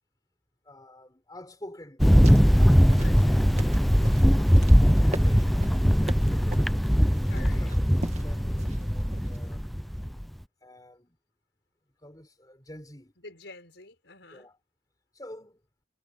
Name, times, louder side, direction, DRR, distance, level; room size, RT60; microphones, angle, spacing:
voice 1, 0.7-2.1 2.6-4.2 4.8-6.9 7.5-9.7 10.6-11.2 12.0-13.1 14.3-14.6 15.1-15.6, left 1 dB, 20° left, 5.3 m, -48 dB
Thunder, 2.0-10.2, equal, ahead, 0.5 m, -21 dB
sound 1, 2.0-9.5, right 1 dB, 35° right, 2.1 m, -41 dB
voice 2, 3.0-3.4 7.3-7.8 13.2-14.5, left 3 dB, 65° left, 6.4 m, -47 dB
head